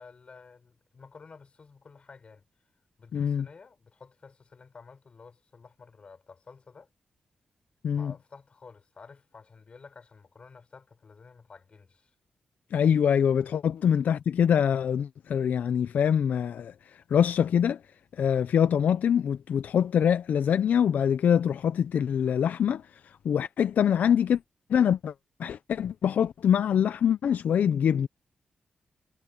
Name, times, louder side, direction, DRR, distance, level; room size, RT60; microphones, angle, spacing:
voice 1, 0.0-2.5 3.0-6.9 7.9-12.1 13.4-13.6, left 4 dB, 45° left, 5.0 m, -51 dB
voice 2, 3.1-3.5 7.8-8.1 12.7-17.8 18.2-24.4 24.7-25.1 25.4-28.1, left 8 dB, 80° left, 0.5 m, -24 dB
wide cardioid pair, 135°, 3 cm